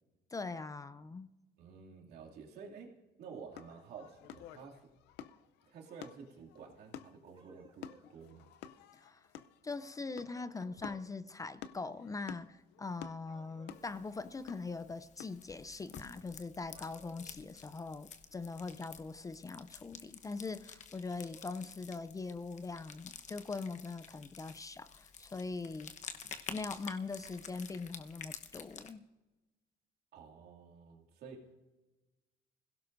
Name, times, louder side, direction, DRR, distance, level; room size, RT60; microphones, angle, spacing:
voice 1, 0.3-1.4 8.9-9.3 9.6-25.9 26.5-29.0, left 3 dB, 20° left, 0.5 m, -42 dB
voice 2, 1.6-4.9 5.7-8.5 30.1-31.6, right 5 dB, 70° right, 2.5 m, -51 dB
sound 1, 3.5-16.2, left 10 dB, 90° left, 0.6 m, -52 dB
sound 2, 7.3-8.1 10.2-11.1 13.3-13.9 16.6-17.4 21.0-21.6, right 4 dB, 30° right, 2.6 m, -62 dB
sound 3, 13.7-28.9, left 7 dB, 45° left, 1.1 m, -51 dB
26.5 x 16.5 x 2.6 m
cardioid pair, 110°, 17 cm